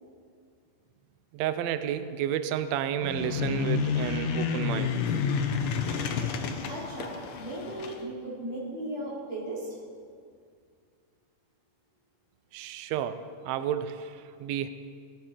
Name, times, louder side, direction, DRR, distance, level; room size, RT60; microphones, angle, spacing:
voice 1, 1.3-5.1 12.5-14.7, right 10 dB, 85° right, 11 dB, 1.5 m, -31 dB
sound 1, 3.0-8.0, left 6 dB, 90° left, 1.2 m, -30 dB
voice 2, 6.7-9.8, right 1 dB, 55° right, -7 dB, 5.1 m, -36 dB
18.0 x 13.5 x 4.4 m, 2.1 s
omnidirectional pair, 3.7 m